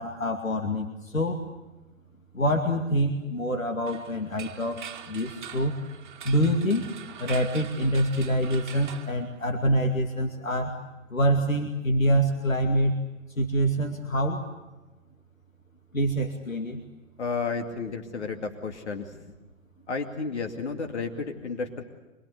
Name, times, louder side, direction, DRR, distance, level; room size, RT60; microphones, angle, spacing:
voice 1, 0.0-1.4 2.3-5.8 6.2-6.9 7.2-10.8 11.1-13.0 13.4-14.5 15.9-16.8, equal, 80° left, 3 dB, 2.5 m, -26 dB
sound 1, 3.9-9.8, right 8 dB, 35° right, 2.0 m, -43 dB
voice 2, 17.2-19.1 19.9-21.8, left 4 dB, 55° left, 4 dB, 2.5 m, -32 dB
25.5 x 23.0 x 8.2 m, 1.1 s
figure-of-eight pair, 125°, 40 cm